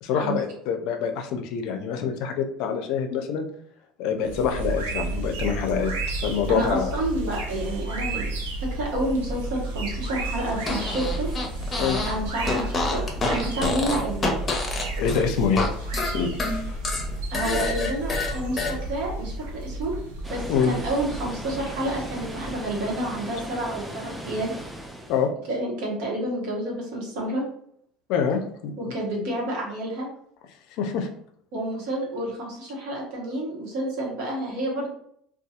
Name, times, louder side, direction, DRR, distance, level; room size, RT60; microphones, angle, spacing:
voice 1, 0.0-3.5 4.0-6.9 11.8-12.0 15.0-15.7 16.1-16.3 20.5-20.8 25.1-25.3 28.1-29.0 30.8-31.1, left 6 dB, 70° left, 5 dB, 0.4 m, -25 dB
sound 1, 4.2-23.6, right 2 dB, 90° right, 0.5 m, -32 dB
voice 2, 6.5-8.3 8.6-11.3 12.1-14.3 17.3-19.9 20.3-24.5 25.5-27.4 28.8-30.1 31.5-34.9, right 1 dB, 75° right, -3 dB, 1.0 m, -29 dB
Fart, 10.6-12.2 12.4-15.7 15.9-18.7, left 3 dB, 30° left, 0.7 m, -28 dB
Water, 20.2-25.3, right 1 dB, 10° right, 0.5 m, -38 dB
2.7 x 2.3 x 2.4 m, 0.67 s
hypercardioid pair, 80°, 0 cm